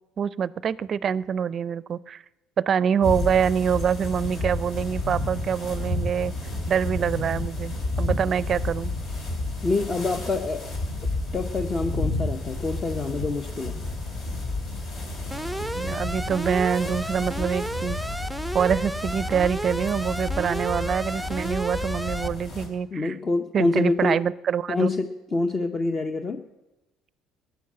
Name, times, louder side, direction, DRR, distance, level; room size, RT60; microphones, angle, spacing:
voice 1, 0.2-2.2 2.6-6.3 6.7-8.9 15.7-18.0 18.5-23.2 23.5-24.9, right 7 dB, 45° right, 20 dB, 0.4 m, -25 dB
sound 1, 3.0-22.7, left 2 dB, 60° left, 4.0 m, -31 dB
voice 2, 9.6-10.7 11.3-13.8 22.9-24.2 24.7-26.4, left 3 dB, 30° left, 7 dB, 0.9 m, -26 dB
Alarm, 15.3-22.3, right 1 dB, ahead, 0.6 m, -32 dB
15.5 x 10.0 x 7.7 m, 1.0 s
supercardioid pair, 75°, 0 cm